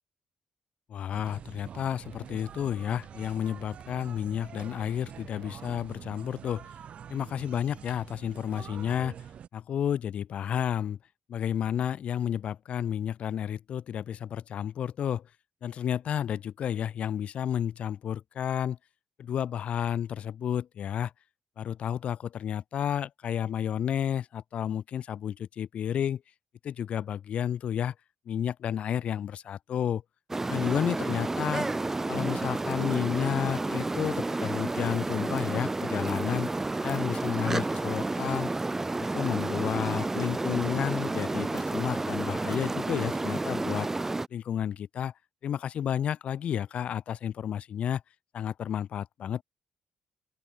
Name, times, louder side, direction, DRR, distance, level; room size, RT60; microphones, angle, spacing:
voice 1, 0.9-6.7 7.1-9.2 9.5-11.0 11.3-15.3 15.6-18.8 19.2-21.1 21.6-26.2 26.6-27.9 28.3-30.0 30.5-31.7 32.1-36.5 36.8-38.5 39.1-43.9 44.3-45.1 45.4-48.0 48.3-49.4, left 9 dB, 65° left, 0.6 m, -31 dB
sound 1, 1.1-9.5, right 8 dB, 65° right, 2.5 m, -46 dB
sound 2, 30.3-44.3, right 2 dB, 15° right, 0.4 m, -31 dB
open air
cardioid pair, 90°, 2 cm